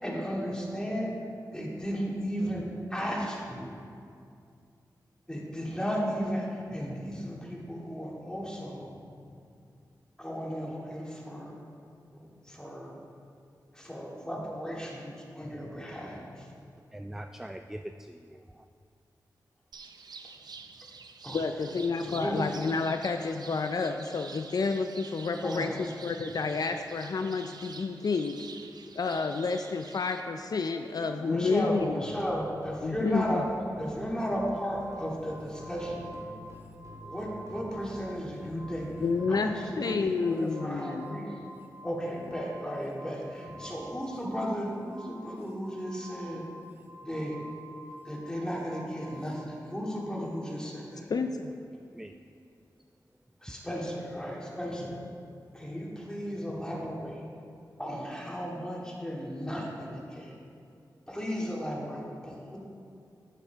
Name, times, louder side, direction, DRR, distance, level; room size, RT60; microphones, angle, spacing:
voice 1, 0.0-1.1 1.5-3.8 5.3-8.9 10.2-11.6 12.1-12.9 13.7-16.5 21.2-21.5 22.0-22.5 25.4-25.8 31.1-33.4 33.8-36.1 37.0-38.9 39.3-41.4 41.8-46.5 47.0-47.4 48.0-51.1 53.4-55.0 55.5-57.2 57.8-60.4 61.1-62.6, equal, 10° left, -4 dB, 2.3 m, -35 dB
voice 2, 16.9-18.7 51.9-52.2, right 1 dB, 5° right, 7 dB, 0.3 m, -42 dB
sound 1, 19.7-30.2, right 4 dB, 70° right, 0.6 m, -48 dB
voice 3, 21.3-28.5 29.0-32.1 32.8-33.4 39.0-41.2 51.1-51.5, left 4 dB, 60° left, 6 dB, 0.4 m, -30 dB
sound 2, 31.4-39.5, right 1 dB, 45° right, 1.3 m, -50 dB
sound 3, 34.2-38.2 38.5-49.4, right 2 dB, 25° right, 1.2 m, -49 dB
10.0 x 8.3 x 3.5 m, 2.4 s
cardioid pair, 50°, 7 cm